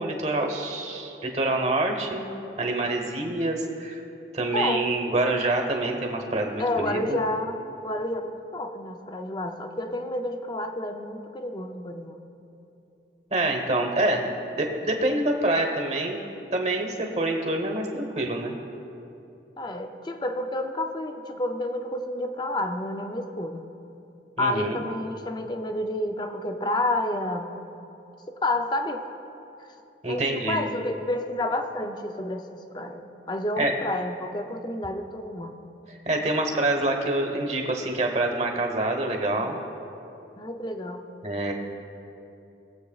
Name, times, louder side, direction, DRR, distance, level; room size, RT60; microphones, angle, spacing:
voice 1, 0.0-2.3 2.6-4.0 4.3-7.2 13.3-14.3 14.5-16.2 16.5-18.6 24.4-24.8 30.0-30.6 33.6-33.7 35.9-39.6 41.2-41.5, right 2 dB, 35° right, 3 dB, 1.0 m, -26 dB
voice 2, 4.5-4.9 6.6-12.2 19.6-23.7 24.4-27.5 28.3-29.1 30.1-35.5 40.4-41.0, left 1 dB, 25° left, 6 dB, 0.5 m, -30 dB
20.5 x 7.9 x 2.4 m, 2.8 s
head